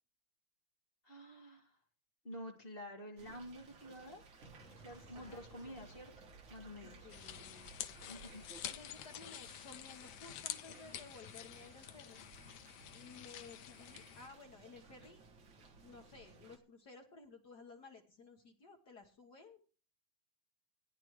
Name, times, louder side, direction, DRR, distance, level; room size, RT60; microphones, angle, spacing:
voice 1, 1.0-1.8 2.2-4.2 4.8-6.1 6.5-7.1 8.1-8.4, equal, 25° left, 0 dB, 1.5 m, -49 dB
sound 1, 3.2-16.6, right 4 dB, 45° right, 2.0 m, -60 dB
Explosion, 4.4-10.4, right 3 dB, 70° right, 0.7 m, -61 dB
voice 2, 5.1-6.0 7.0-7.7 8.6-12.3 12.9-15.2 15.7-19.6, left 4 dB, 50° left, 2 dB, 1.2 m, -56 dB
sound 2, 7.1-14.3, left 12 dB, 75° left, 1.6 m, -48 dB
17.0 x 10.0 x 3.1 m, 0.37 s
omnidirectional pair, 3.4 m